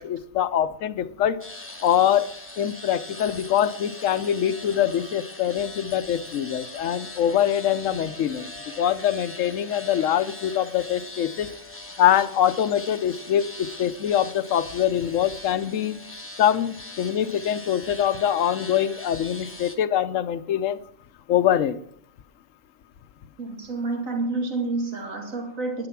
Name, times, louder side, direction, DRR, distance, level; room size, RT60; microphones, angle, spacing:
voice 1, 0.0-1.4 1.8-2.3 2.6-11.5 12.0-16.0 16.4-20.8 21.3-21.8, left 10 dB, 75° left, 13 dB, 1.1 m, -24 dB
sound 1, 1.4-19.8, left 2 dB, 10° left, 1.1 m, -41 dB
voice 2, 23.4-25.9, right 3 dB, 80° right, 3 dB, 2.4 m, -29 dB
10.5 x 9.9 x 5.9 m, 0.63 s
omnidirectional pair, 1.4 m